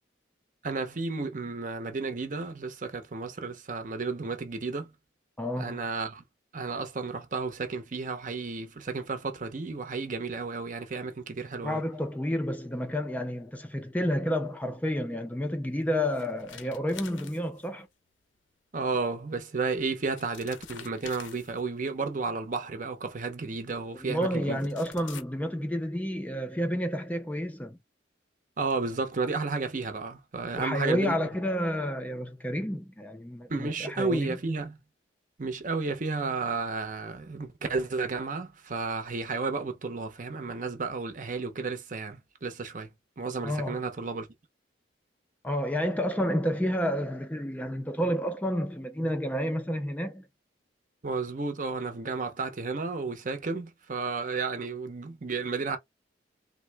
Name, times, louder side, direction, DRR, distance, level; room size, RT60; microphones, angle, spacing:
voice 1, 0.6-4.9 5.6-6.2 6.5-11.8 18.7-24.6 28.6-31.2 33.5-34.8 35.4-44.3 51.0-55.8, right 4 dB, 45° right, 0.7 m, -32 dB
voice 2, 5.4-5.8 11.6-17.9 24.0-27.8 30.6-34.4 43.4-43.8 45.4-50.3, equal, 10° left, 0.3 m, -30 dB
sound 1, 15.8-17.9 19.3-19.4 19.9-21.9 23.1-23.2 24.2-24.3 24.5-25.2, left 8 dB, 90° left, 0.7 m, -47 dB
3.5 x 2.0 x 3.3 m
head